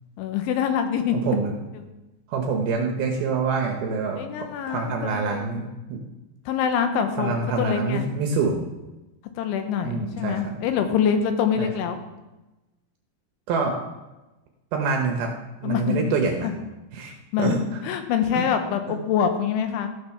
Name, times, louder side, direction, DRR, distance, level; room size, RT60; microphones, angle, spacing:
voice 1, 0.2-1.2 4.2-5.5 6.5-8.0 9.4-12.0 15.6-16.0 16.4-16.5 17.3-17.5 17.8-19.9, left 8 dB, 85° left, 7 dB, 3.4 m, -25 dB
voice 2, 1.1-1.5 2.3-4.2 4.7-6.0 7.2-8.6 9.8-10.5 11.6-11.7 13.5-13.8 14.7-15.3 15.6-16.5 16.9-17.8 18.3-18.4, right 4 dB, 70° right, 2 dB, 2.5 m, -26 dB
14.5 x 6.8 x 5.8 m, 1.0 s
omnidirectional pair, 5.3 m